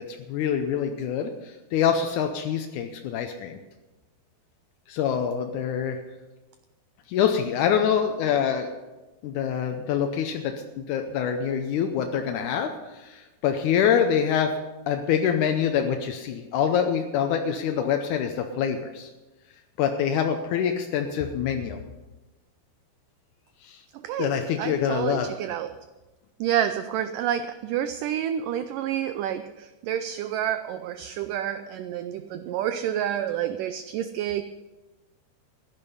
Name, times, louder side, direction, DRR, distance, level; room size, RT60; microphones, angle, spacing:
voice 1, 0.0-3.6 4.9-6.0 7.1-8.7 9.2-14.5 14.9-19.1 19.8-21.8 23.6-23.8 24.2-25.3, left 8 dB, 80° left, 5 dB, 1.8 m, -25 dB
voice 2, 24.0-25.8 26.4-34.4, right 10 dB, 85° right, 11 dB, 1.9 m, -29 dB
15.5 x 11.0 x 5.5 m, 1.1 s
omnidirectional pair, 4.4 m